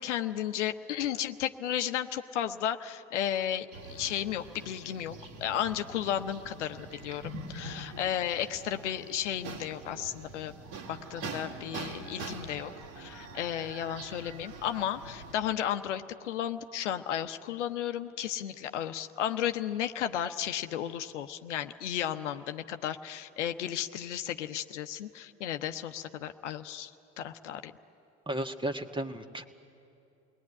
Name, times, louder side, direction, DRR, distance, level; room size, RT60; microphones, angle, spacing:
voice 1, 0.0-10.5 10.9-12.7 13.0-26.9 27.2-27.7, left 10 dB, 80° left, 8 dB, 0.9 m, -34 dB
sound 1, 3.7-15.3, right 3 dB, 65° right, 3.4 m, -44 dB
voice 2, 28.3-29.4, right 1 dB, 15° right, 7 dB, 1.6 m, -34 dB
28.5 x 20.5 x 9.8 m, 2.7 s
hypercardioid pair, 65°, 35 cm